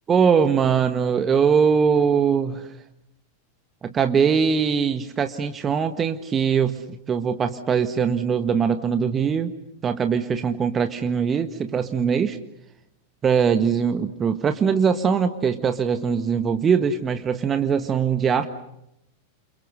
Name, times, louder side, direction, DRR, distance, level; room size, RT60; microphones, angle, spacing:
voice 1, 0.1-2.7 3.8-9.5 9.8-12.4 13.2-18.5, right 6 dB, 20° right, 8 dB, 1.6 m, -21 dB
29.0 x 28.5 x 6.5 m, 0.79 s
figure-of-eight pair, 90°, 0 cm